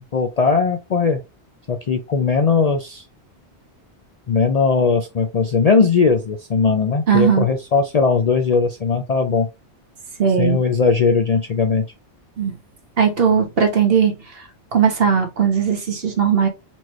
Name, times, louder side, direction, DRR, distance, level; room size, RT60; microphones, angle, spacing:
voice 1, 0.1-1.2 1.7-3.0 4.3-9.5 10.4-11.8, left 5 dB, 50° left, 0.4 m, -18 dB
voice 2, 7.1-7.5 10.2-10.6 12.4-12.5 13.0-14.1 14.7-16.5, right 7 dB, 60° right, 1.3 m, -17 dB
4.3 x 3.0 x 3.0 m
omnidirectional pair, 1.2 m